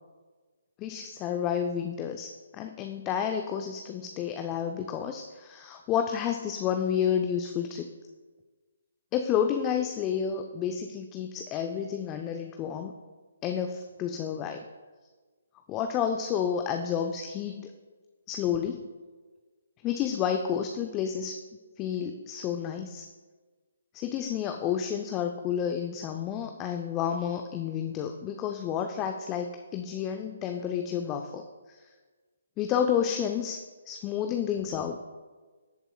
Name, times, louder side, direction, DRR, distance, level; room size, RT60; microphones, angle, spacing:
voice 1, 0.8-7.9 9.1-12.9 13.4-14.6 15.7-17.7 18.3-18.9 19.8-21.4 21.8-23.0 23.9-31.4 31.7-31.8 32.6-33.6 33.9-35.0, left 8 dB, 20° left, 5 dB, 0.4 m, -30 dB
13.5 x 7.8 x 2.3 m, 1.4 s
figure-of-eight pair, 140°, 0 cm